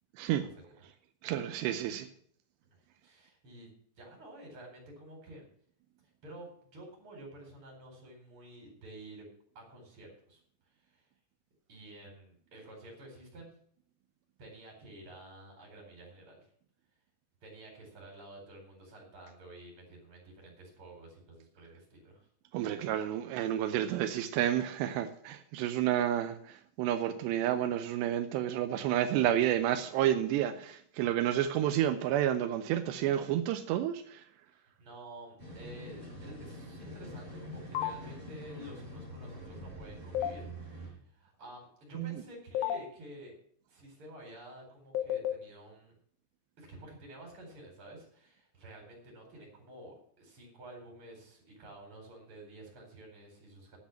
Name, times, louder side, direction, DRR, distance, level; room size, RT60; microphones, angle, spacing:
voice 1, 1.2-2.1 22.5-34.2 42.0-42.2, right 11 dB, 85° right, 2.9 m, -30 dB
voice 2, 2.7-3.7 4.0-5.5 6.2-9.3 9.5-10.4 10.8-11.1 11.7-13.5 14.4-16.5 17.4-22.3 22.8-23.1 25.8-25.9 34.5-43.4 43.7-45.9 46.6-53.8, right 1 dB, 30° right, 4.9 m, -51 dB
sound 1, 35.4-40.9, equal, 10° right, 4.9 m, -45 dB
sound 2, 37.7-37.9 40.1-40.3 42.5-42.8 44.9-45.3, left 11 dB, 80° left, 3.1 m, -30 dB
10.5 x 8.2 x 7.2 m
omnidirectional pair, 4.9 m